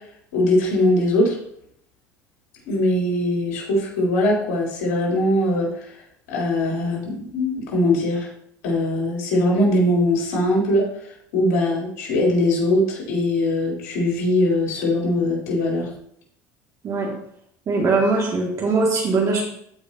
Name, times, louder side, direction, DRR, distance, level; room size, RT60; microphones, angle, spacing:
voice 1, 0.3-1.3 2.7-5.7 6.3-8.3 8.6-10.8 11.3-15.9, left 1 dB, 85° left, -3 dB, 3.9 m, -21 dB
voice 2, 17.7-19.4, right 3 dB, 45° right, -2 dB, 2.4 m, -21 dB
14.5 x 5.1 x 2.9 m, 0.69 s
supercardioid pair, 95°, 9 cm